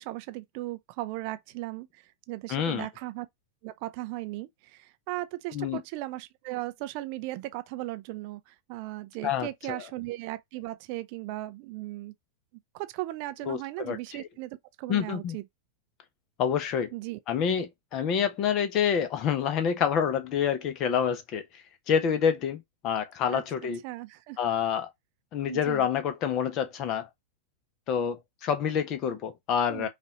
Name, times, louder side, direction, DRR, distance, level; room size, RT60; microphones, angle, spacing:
voice 1, 0.0-3.3 3.6-12.1 12.7-15.4 16.9-17.2 23.3-23.4 23.8-24.4 25.5-25.9 29.7-29.9, right 17 dB, 45° right, 0.4 m, -37 dB
voice 2, 2.5-2.9 5.5-5.8 9.2-9.8 13.5-14.3 14.9-15.4 16.4-16.9 17.3-23.8 24.4-24.9 25.3-27.1 27.9-29.9, left 8 dB, 35° left, 0.9 m, -28 dB
5.3 x 2.6 x 2.9 m
figure-of-eight pair, 90°, 0 cm